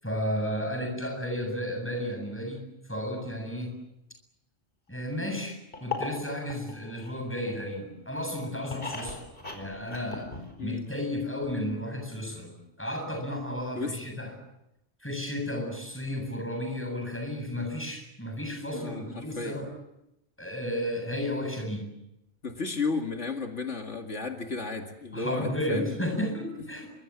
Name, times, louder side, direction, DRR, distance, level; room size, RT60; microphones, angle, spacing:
voice 1, 0.0-3.8 4.9-9.2 9.5-10.3 10.6-14.3 15.0-19.7 20.4-21.9 25.1-26.9, left 1 dB, 10° left, 3 dB, 7.8 m, -33 dB
sound 1, 5.7-7.8 8.2-10.9 11.1-11.2 11.4-11.5, left 4 dB, 50° left, 5.3 m, -38 dB
voice 2, 18.7-19.7 22.4-26.0, left 4 dB, 75° left, 3 dB, 2.5 m, -33 dB
27.0 x 25.0 x 7.3 m, 0.87 s
omnidirectional pair, 1.2 m